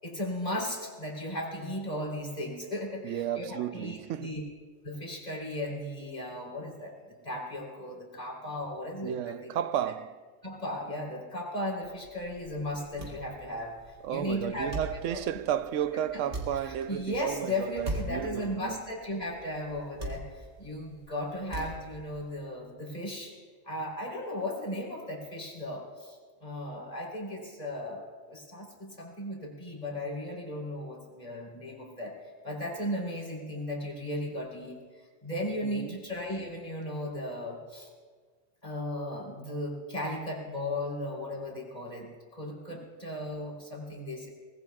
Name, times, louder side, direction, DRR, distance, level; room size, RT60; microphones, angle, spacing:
voice 1, 0.0-3.5 3.7-4.4 4.8-9.3 10.4-14.7 15.0-15.2 16.1-16.2 16.7-23.3 23.6-32.2 32.4-37.9 38.6-44.3, left 1 dB, 30° left, 3.8 m, -36 dB
voice 2, 3.0-4.4 9.0-10.3 14.0-18.8 35.6-36.0 42.7-42.9, right 10 dB, 80° right, 1.0 m, -33 dB
sound 1, 11.8-22.3, right 1 dB, 60° right, 3.3 m, -42 dB
24.5 x 19.5 x 2.4 m
omnidirectional pair, 1.3 m